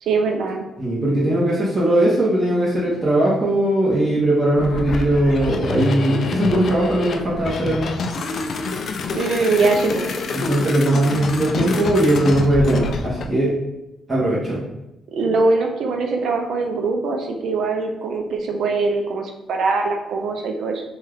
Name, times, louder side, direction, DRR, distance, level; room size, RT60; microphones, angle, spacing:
voice 1, 0.0-0.6 9.1-10.1 15.1-20.8, right 3 dB, 70° right, 3 dB, 0.5 m, -22 dB
voice 2, 0.8-7.9 10.3-13.5 14.1-14.6, right 1 dB, 25° right, -7 dB, 0.9 m, -19 dB
sound 1, 4.6-13.3, left 4 dB, 55° left, 0.3 m, -27 dB
2.7 x 2.3 x 3.4 m, 0.94 s
cardioid pair, 90°, 0 cm